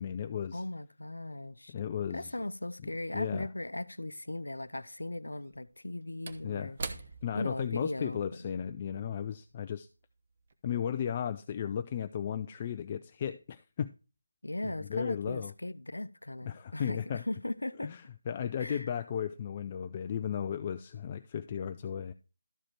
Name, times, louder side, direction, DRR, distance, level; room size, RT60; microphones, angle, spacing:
voice 1, 0.0-0.6 1.7-2.3 3.1-3.5 6.4-6.7 7.2-9.9 10.6-13.9 14.6-15.5 16.4-17.2 17.8-22.1, left 8 dB, 25° left, 0.4 m, -35 dB
voice 2, 0.5-1.7 2.1-6.8 7.3-8.4 14.4-17.9 18.6-18.9, left 1 dB, 90° left, 0.7 m, -38 dB
Slam / Wood, 3.8-3.9 5.3-10.0 10.4-10.5, right 4 dB, 35° right, 1.1 m, -46 dB
13.0 x 5.0 x 4.4 m
figure-of-eight pair, 165°, 0 cm